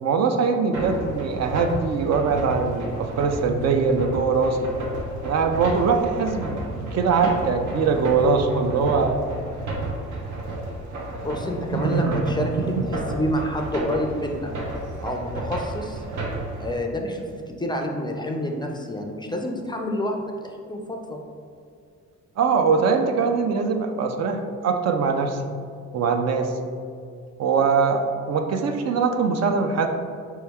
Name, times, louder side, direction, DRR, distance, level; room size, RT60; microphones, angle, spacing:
voice 1, 0.0-4.7 5.2-9.2 11.6-12.3 12.8-12.9 22.4-25.4 25.9-26.5 27.4-29.9, right 5 dB, 60° right, 5 dB, 0.5 m, -22 dB
sound 1, 0.7-16.8, right 2 dB, 75° right, 0.9 m, -32 dB
voice 2, 11.2-14.5 15.0-16.0 16.6-21.2, left 1 dB, 15° left, 2 dB, 0.4 m, -28 dB
4.5 x 3.0 x 3.4 m, 2.3 s
cardioid pair, 90°, 30 cm